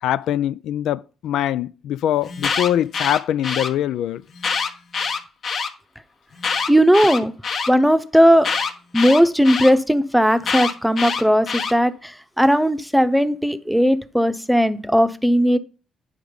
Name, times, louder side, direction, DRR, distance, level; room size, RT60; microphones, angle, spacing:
voice 1, 0.0-4.2, left 11 dB, 80° left, 0.3 m, -23 dB
Alarm, 2.2-3.7 4.4-5.7 6.4-7.7 8.4-9.7 10.4-11.7, left 5 dB, 55° left, 1.3 m, -24 dB
voice 2, 6.7-7.3 7.7-8.5 8.9-15.6, equal, ahead, 0.8 m, -17 dB
9.7 x 4.9 x 5.2 m
cardioid pair, 90°, 0 cm